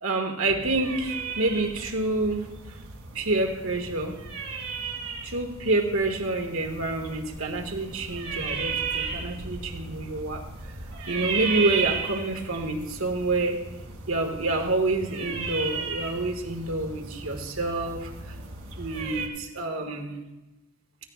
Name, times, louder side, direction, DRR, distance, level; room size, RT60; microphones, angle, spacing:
voice 1, 0.0-2.5 3.1-4.2 5.2-10.4 11.1-13.6 14.1-18.4 18.8-20.1, right 2 dB, 70° right, 3 dB, 1.8 m, -28 dB
sound 1, 0.6-19.3, right 5 dB, 85° right, 2.4 m, -35 dB
17.5 x 15.0 x 2.4 m, 1.0 s
head